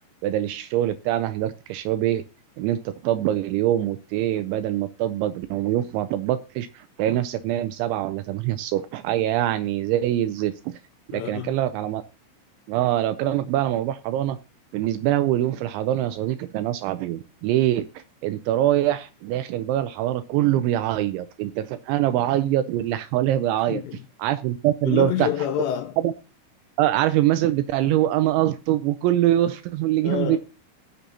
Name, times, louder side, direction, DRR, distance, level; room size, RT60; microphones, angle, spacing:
voice 1, 0.2-2.2 2.6-10.8 11.1-12.0 12.7-14.4 14.7-23.8 24.2-25.3 26.0-26.1 26.8-30.4, right 13 dB, 85° right, 2.7 m, -24 dB
voice 2, 11.1-11.6 23.7-24.0 24.8-26.0 30.0-30.4, left 11 dB, 80° left, 2.8 m, -27 dB
18.0 x 6.8 x 2.8 m
omnidirectional pair, 5.8 m